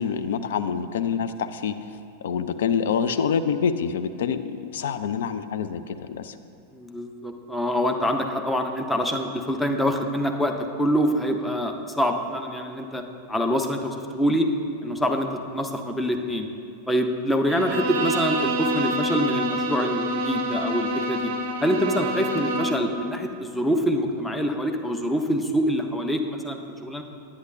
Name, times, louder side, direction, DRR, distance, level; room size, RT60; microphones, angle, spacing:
voice 1, 0.0-1.7 2.2-6.4, left 7 dB, 60° left, 10 dB, 0.3 m, -26 dB
voice 2, 6.7-13.0 13.3-14.5 14.8-16.5 16.9-21.3 21.6-27.0, equal, 5° left, 3 dB, 0.6 m, -25 dB
Bowed string instrument, 17.5-22.9, right 1 dB, 50° right, 0.5 m, -27 dB
9.5 x 8.4 x 2.6 m, 2.5 s
figure-of-eight pair, 90°, 0 cm